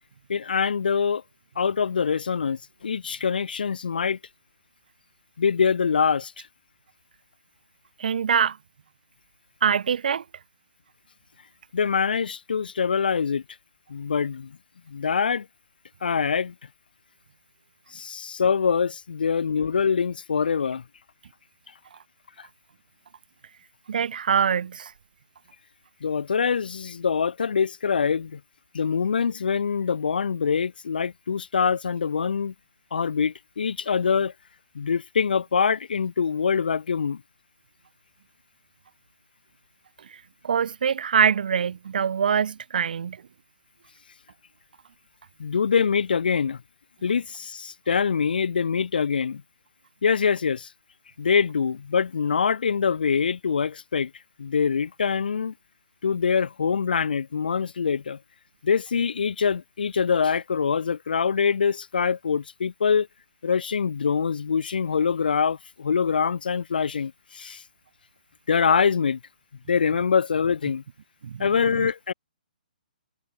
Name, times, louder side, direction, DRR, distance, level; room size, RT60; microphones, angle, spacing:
voice 1, 0.3-1.2 1.6-4.2 5.4-6.3 11.7-13.4 13.9-14.6 14.9-15.5 16.0-16.5 17.9-20.8 26.0-28.4 28.7-32.5 32.9-34.3 34.7-37.2 45.4-46.6 47.0-49.4 50.0-50.7 51.2-54.1 54.4-55.5 56.0-58.2 58.6-63.1 63.4-67.6 68.5-69.2 69.7-70.8 71.4-72.1, left 6 dB, 75° left, 0.7 m, -24 dB
voice 2, 8.0-8.6 9.6-10.2 23.9-24.9 40.1-43.2 71.2-71.9, right 7 dB, 70° right, 0.5 m, -24 dB
hypercardioid pair, 145°, 5 cm